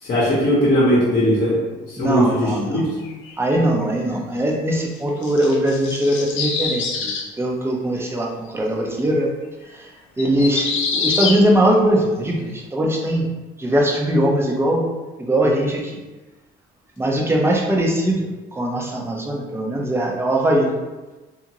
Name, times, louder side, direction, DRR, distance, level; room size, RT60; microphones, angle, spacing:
voice 1, 0.0-2.9, equal, 45° left, -8 dB, 0.9 m, -19 dB
voice 2, 2.0-2.8 3.4-9.3 9.7-9.9 10.2-13.3 13.6-14.8 15.2-16.0 17.0-20.8, right 1 dB, 10° right, -1 dB, 0.6 m, -21 dB
sound 1, 3.0-3.3 5.1-7.3 10.2-11.4, left 5 dB, 70° left, 0.5 m, -25 dB
2.8 x 2.5 x 2.8 m, 1.2 s
cardioid pair, 95°, 21 cm